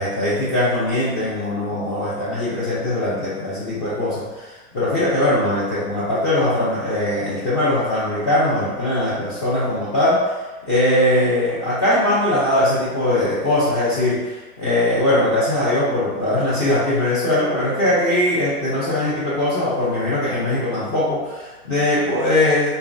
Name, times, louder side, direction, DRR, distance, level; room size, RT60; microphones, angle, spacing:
voice 1, 0.0-10.3 10.7-22.7, left 1 dB, 20° left, -9 dB, 0.3 m, -20 dB
3.1 x 2.0 x 2.4 m, 1.2 s
figure-of-eight pair, 105°, 44 cm